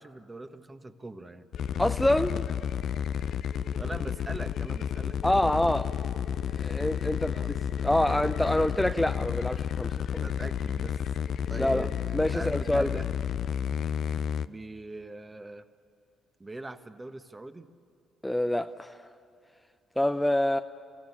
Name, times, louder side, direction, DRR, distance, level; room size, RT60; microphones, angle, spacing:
voice 1, 0.0-1.5 3.8-5.2 7.3-7.5 10.2-11.0 11.5-13.1 14.5-15.7 16.4-17.7, right 2 dB, 20° right, 9 dB, 1.4 m, -42 dB
sound 1, 1.5-14.5, left 8 dB, 60° left, 0.5 m, -31 dB
voice 2, 1.8-2.5 5.2-5.9 6.6-7.3 7.8-10.2 11.6-11.9 12.1-13.0 18.2-19.1 20.0-20.6, left 1 dB, 5° left, 8 dB, 0.6 m, -26 dB
29.5 x 15.5 x 8.7 m, 2.3 s
hypercardioid pair, 45°, 0 cm